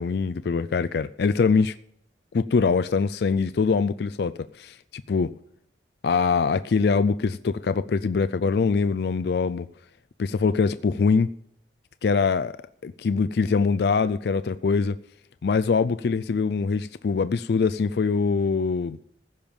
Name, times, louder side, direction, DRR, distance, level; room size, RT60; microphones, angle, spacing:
voice 1, 0.0-1.7 2.3-5.3 6.0-9.7 10.2-11.3 12.0-12.5 12.8-15.0 15.4-19.0, left 5 dB, 60° left, 0.4 m, -23 dB
15.5 x 5.4 x 8.8 m
head